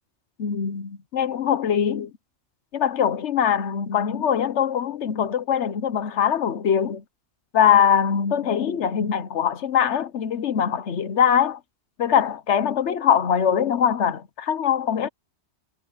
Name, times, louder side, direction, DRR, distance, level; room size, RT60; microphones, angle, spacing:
voice 1, 0.4-2.1 2.7-7.0 7.5-11.6 12.0-15.1, left 8 dB, 85° left, 1.2 m, -22 dB
omnidirectional pair, 1.2 m